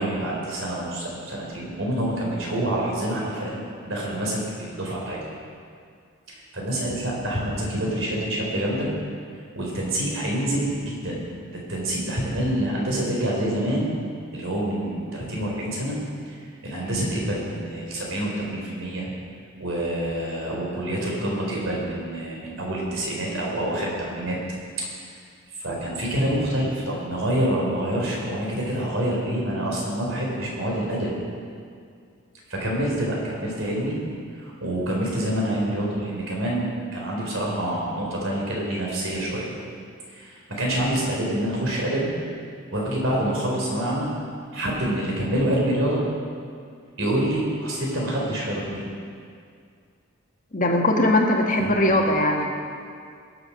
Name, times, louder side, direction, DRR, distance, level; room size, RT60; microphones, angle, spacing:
voice 1, 0.0-3.6 3.9-5.2 6.3-8.9 9.6-11.2 11.5-13.9 14.3-16.0 16.3-19.1 19.6-24.4 25.6-31.1 32.5-34.0 34.3-39.5 40.1-42.1 42.7-44.1 44.5-46.0 47.0-48.8 51.6-51.9, right 1 dB, 60° right, -3 dB, 4.3 m, -27 dB
voice 2, 50.5-52.5, left 1 dB, 40° left, 1 dB, 1.6 m, -20 dB
21.0 x 7.9 x 6.4 m, 2.2 s
head